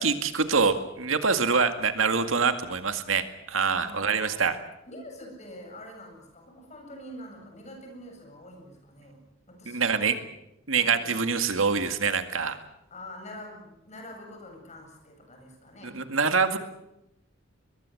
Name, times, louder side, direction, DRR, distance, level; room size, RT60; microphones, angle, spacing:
voice 1, 0.0-4.6 9.7-10.2 10.7-12.6 15.8-16.6, right 5 dB, 80° right, 8 dB, 2.1 m, -25 dB
voice 2, 3.6-4.4 4.9-9.2 9.5-10.1 10.8-11.2 12.9-16.0, left 1 dB, 35° left, 3 dB, 8.0 m, -45 dB
23.0 x 21.5 x 7.9 m, 0.88 s
head